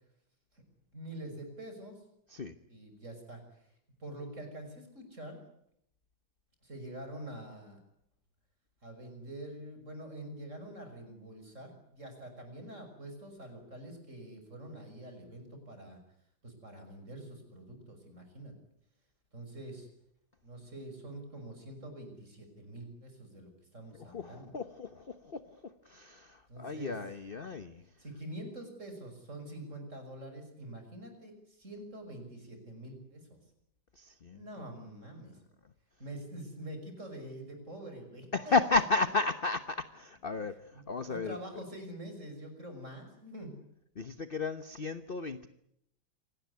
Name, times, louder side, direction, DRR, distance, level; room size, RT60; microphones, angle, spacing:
voice 1, 0.9-2.0 2.7-3.7 4.0-5.4 6.6-7.8 8.8-16.0 16.4-18.5 19.3-19.9 20.4-24.5 26.5-27.0 28.0-33.4 34.3-35.4 36.0-39.1 40.4-43.6, right 1 dB, 35° right, 5 dB, 6.5 m, -46 dB
voice 2, 24.1-25.4 25.9-27.8 34.0-34.4 38.3-40.5 40.9-41.3 44.0-45.5, left 3 dB, 35° left, 11 dB, 1.0 m, -33 dB
26.5 x 18.5 x 9.6 m, 0.75 s
omnidirectional pair, 2.1 m